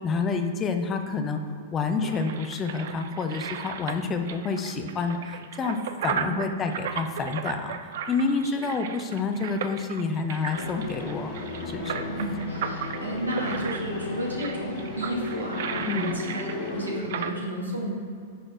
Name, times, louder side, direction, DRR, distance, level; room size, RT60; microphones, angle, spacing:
voice 1, 0.0-1.4 1.7-11.3 11.7-12.1 15.9-16.2, left 4 dB, 25° left, 6 dB, 0.7 m, -28 dB
sound 1, 1.5-17.3, right 8 dB, 55° right, 0.5 m, -35 dB
voice 2, 8.4-8.8 12.1-17.9, right 1 dB, 80° right, -2 dB, 1.7 m, -32 dB
sound 2, 10.3-17.0, left 2 dB, 40° left, 1.4 m, -44 dB
sound 3, 10.5-16.9, left 3 dB, 70° left, 1.4 m, -35 dB
10.0 x 4.3 x 4.5 m, 2.2 s
figure-of-eight pair, 100°, 0 cm